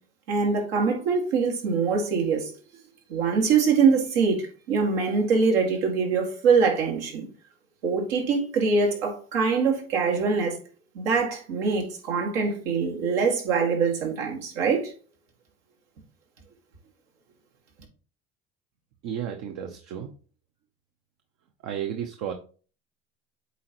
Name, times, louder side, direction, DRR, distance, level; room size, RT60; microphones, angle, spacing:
voice 1, 0.3-2.5 3.1-7.2 7.8-10.6 10.9-14.9, right 5 dB, 90° right, 2.1 m, -23 dB
voice 2, 19.0-20.1 21.6-22.3, right 9 dB, 70° right, 0.9 m, -32 dB
8.2 x 4.0 x 3.0 m
supercardioid pair, 95°, 29 cm